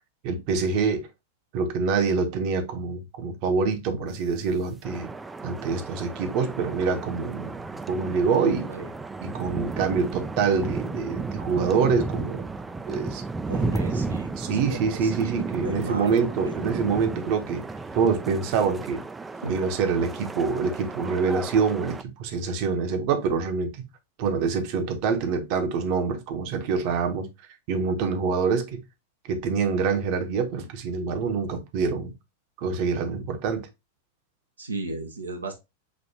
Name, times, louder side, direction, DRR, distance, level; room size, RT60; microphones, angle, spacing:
voice 1, 0.2-1.1 1.5-5.1 5.4-8.7 9.2-12.4 12.9-13.2 14.4-17.6 17.9-19.0 19.5-23.8 24.2-27.3 27.7-28.8 29.2-32.1 32.6-33.6, right 5 dB, 50° right, 1.0 m, -26 dB
sound 1, 4.8-22.0, right 3 dB, 10° right, 0.4 m, -34 dB
voice 2, 8.4-8.9 13.5-16.5 19.4-19.6 24.4-24.5 28.2-28.3 34.6-35.5, right 2 dB, 85° right, 0.8 m, -35 dB
6.2 x 2.5 x 2.8 m
figure-of-eight pair, 95°, 0 cm